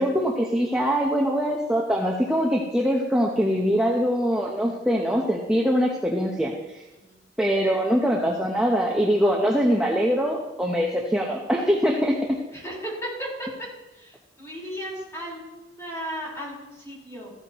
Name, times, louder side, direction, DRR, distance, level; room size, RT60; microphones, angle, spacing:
voice 1, 0.0-6.8 7.4-12.1, equal, 5° right, -2 dB, 1.0 m, -23 dB
voice 2, 12.5-13.3 13.9-17.3, equal, 15° left, -4 dB, 4.8 m, -35 dB
15.0 x 13.5 x 3.1 m, 1.1 s
head